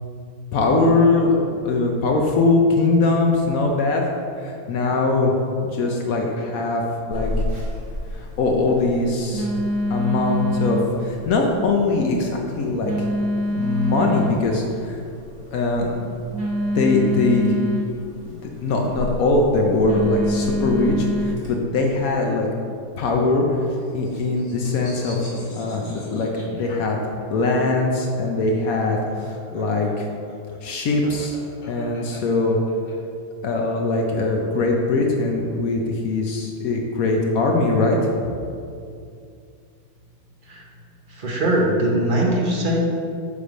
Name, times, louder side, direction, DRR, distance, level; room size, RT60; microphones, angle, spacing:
voice 1, 0.5-5.3 5.7-6.8 7.1-7.3 8.1-9.5 9.9-13.1 13.5-15.0 15.5-16.1 16.7-17.5 18.3-22.5 23.0-25.2 25.5-27.0 27.3-30.1 30.6-31.4 31.7-32.6 33.4-38.1, left 3 dB, 70° left, 1 dB, 0.8 m, -21 dB
Telephone, 7.1-21.5, equal, 25° right, 1.2 m, -27 dB
sound 1, 23.4-27.4 28.7-32.9, left 1 dB, 35° left, 1.2 m, -42 dB
voice 2, 41.1-42.8, right 1 dB, 45° right, -2 dB, 0.6 m, -21 dB
7.0 x 3.3 x 5.0 m, 2.4 s
omnidirectional pair, 2.0 m